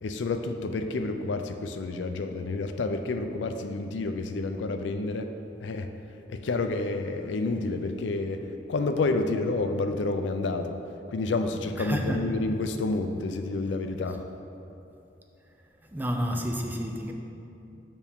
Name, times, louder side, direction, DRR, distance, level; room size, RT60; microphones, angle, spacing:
voice 1, 0.0-5.3 5.6-5.9 6.3-8.4 8.7-10.8 11.1-14.2, left 3 dB, 75° left, 7 dB, 0.4 m, -29 dB
voice 2, 11.8-12.3 15.9-17.1, equal, 10° right, 2 dB, 0.4 m, -30 dB
7.0 x 5.8 x 3.5 m, 2.8 s
head